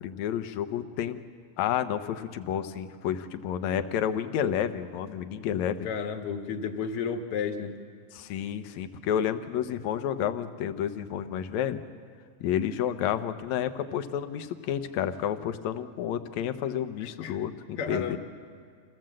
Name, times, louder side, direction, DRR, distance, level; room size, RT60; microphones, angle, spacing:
voice 1, 0.0-1.2 1.6-5.9 8.1-11.8 12.4-18.2, left 9 dB, 70° left, 10 dB, 1.8 m, -30 dB
voice 2, 5.8-7.7 17.2-17.4 17.8-18.2, left 6 dB, 55° left, 5 dB, 1.8 m, -32 dB
27.0 x 17.0 x 7.6 m, 2.1 s
omnidirectional pair, 4.0 m